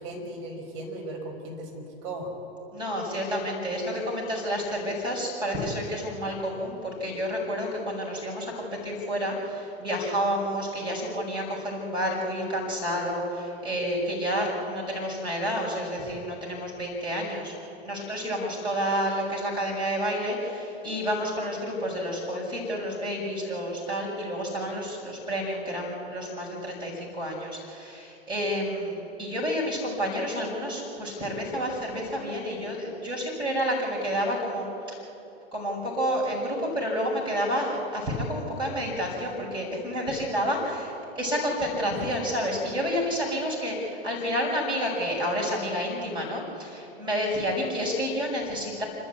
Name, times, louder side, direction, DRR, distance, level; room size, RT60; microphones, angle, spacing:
voice 1, 0.0-2.4 41.9-42.2, right 1 dB, 45° right, 0 dB, 5.3 m, -37 dB
voice 2, 2.7-17.5 17.8-34.7 35.5-48.8, equal, 15° right, -3 dB, 6.6 m, -30 dB
27.0 x 13.5 x 8.4 m, 2.9 s
figure-of-eight pair, 100°, 32 cm